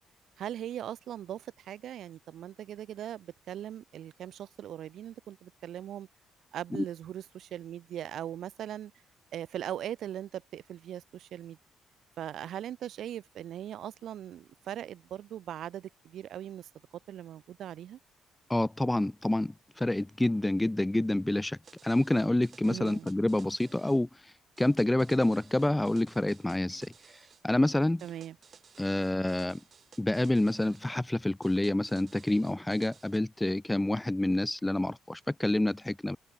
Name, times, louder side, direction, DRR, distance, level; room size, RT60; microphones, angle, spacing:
voice 1, 0.4-6.1 6.5-8.9 9.3-11.6 12.2-16.7 17.1-18.0 22.7-23.1 28.0-28.4, right 11 dB, 65° right, 6.2 m, -40 dB
voice 2, 18.5-21.6 21.8-24.1 24.6-26.9 27.4-28.0 28.8-29.6 30.0-36.2, left 1 dB, 10° left, 0.4 m, -28 dB
sound 1, 21.6-24.0 24.6-27.4 28.0-30.9 31.4-33.2, right 7 dB, 40° right, 6.6 m, -58 dB
cardioid pair, 145°, 0 cm